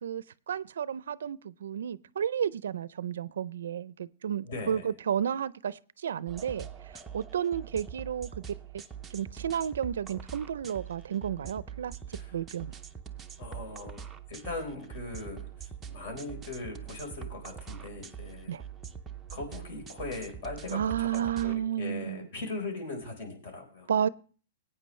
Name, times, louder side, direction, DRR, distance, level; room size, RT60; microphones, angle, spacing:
voice 1, 0.0-6.7 7.1-8.4 9.1-11.9 12.3-12.7 18.5-18.6 20.7-22.3 23.9-24.1, right 9 dB, 85° right, 0.5 m, -32 dB
voice 2, 4.4-4.8 12.1-12.4 13.4-14.0 14.3-18.5 19.3-23.9, left 3 dB, 50° left, 4.3 m, -40 dB
sound 1, 6.3-21.6, right 8 dB, 10° right, 0.6 m, -44 dB
20.5 x 8.9 x 3.2 m
hypercardioid pair, 170°, 0 cm